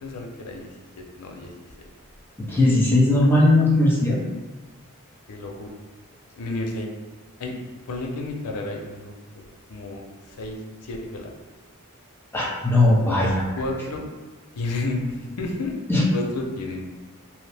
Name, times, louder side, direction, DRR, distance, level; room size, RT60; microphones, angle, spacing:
voice 1, 0.0-1.5 1.8-1.9 5.3-5.8 6.4-6.9 7.4-7.5 7.9-10.0 10.3-11.3 13.6-14.1 14.5-15.7 16.1-16.9, left 2 dB, 85° left, 1 dB, 0.5 m, -31 dB
voice 2, 2.4-4.2 12.3-13.4 15.9-16.0, left 2 dB, 10° left, -6 dB, 0.6 m, -18 dB
2.8 x 2.0 x 3.3 m, 1.2 s
head